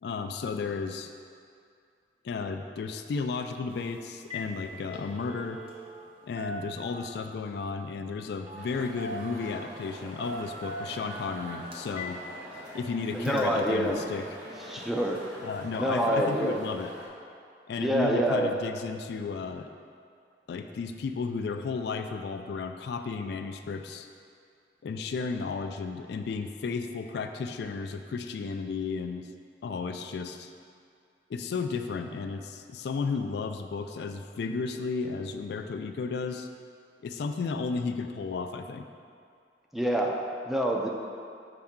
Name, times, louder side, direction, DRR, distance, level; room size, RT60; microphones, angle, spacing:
voice 1, 0.0-1.1 2.2-5.6 6.2-12.2 12.7-14.2 15.4-16.9 17.7-19.7 20.5-24.1 24.8-29.3 29.6-30.5 31.3-36.5 37.0-38.9, left 4 dB, 65° left, 7 dB, 0.3 m, -33 dB
Telephone, 3.7-3.9 4.2-4.5 4.8-6.1 6.4-7.3 8.5-8.7 9.0-9.7 10.2-12.2 12.5-12.6 13.2-13.4, equal, 30° right, 0.8 m, -40 dB
sound 1, 8.6-17.1, equal, 85° right, 1.0 m, -45 dB
voice 2, 13.1-14.1 14.6-15.3 15.8-16.6 17.8-18.5 39.7-40.9, equal, ahead, 0 dB, 0.4 m, -27 dB
5.7 x 5.2 x 3.6 m, 2.3 s
head